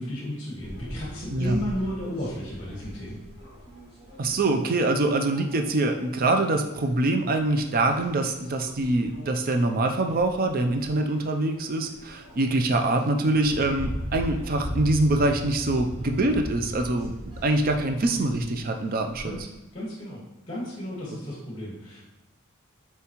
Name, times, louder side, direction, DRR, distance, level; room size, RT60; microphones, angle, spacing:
voice 1, 0.0-3.2 19.2-20.2 20.5-22.0, equal, 25° left, -7 dB, 1.5 m, -33 dB
sound 1, 0.6-19.4, left 1 dB, 25° right, 2.3 m, -40 dB
voice 2, 4.2-17.1 17.4-19.3, right 2 dB, 45° right, 5 dB, 0.5 m, -24 dB
7.2 x 4.5 x 3.0 m, 0.95 s
head